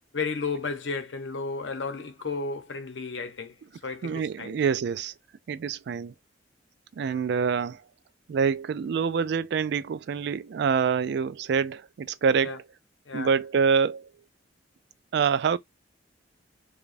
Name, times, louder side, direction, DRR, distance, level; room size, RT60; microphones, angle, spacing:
voice 1, 0.1-3.6 3.8-4.6 7.0-7.2 12.4-12.6 13.1-13.3, left 4 dB, 80° left, 0.8 m, -33 dB
voice 2, 4.0-5.1 5.5-6.1 7.0-7.8 8.3-12.6 13.1-14.1 15.1-15.6, right 6 dB, 60° right, 0.3 m, -26 dB
4.9 x 2.3 x 2.5 m
head